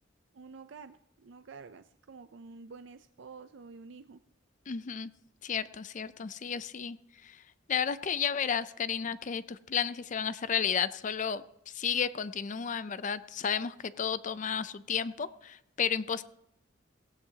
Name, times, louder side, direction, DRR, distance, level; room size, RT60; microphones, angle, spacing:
voice 1, 0.3-4.2, right 4 dB, 75° right, 10 dB, 0.5 m, -49 dB
voice 2, 4.7-5.1 5.4-7.0 7.2-7.4 7.7-16.2, left 7 dB, 40° left, 15 dB, 0.4 m, -32 dB
17.5 x 16.5 x 2.8 m, 0.79 s
head